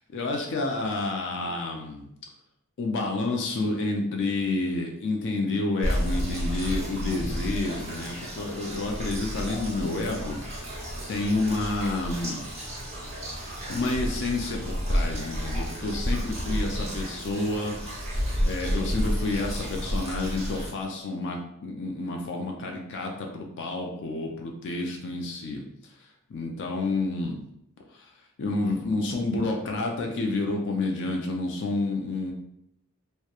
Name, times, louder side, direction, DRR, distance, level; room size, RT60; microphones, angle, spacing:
voice 1, 0.1-2.0 2.8-10.4 10.7-12.4 13.3-17.8 18.4-25.6 26.3-27.4 27.9-28.1 28.4-32.3, left 2 dB, 55° left, 2 dB, 0.4 m, -29 dB
sound 1, 5.8-20.7, equal, 30° right, 0.8 m, -31 dB
2.8 x 2.1 x 2.3 m, 0.78 s
head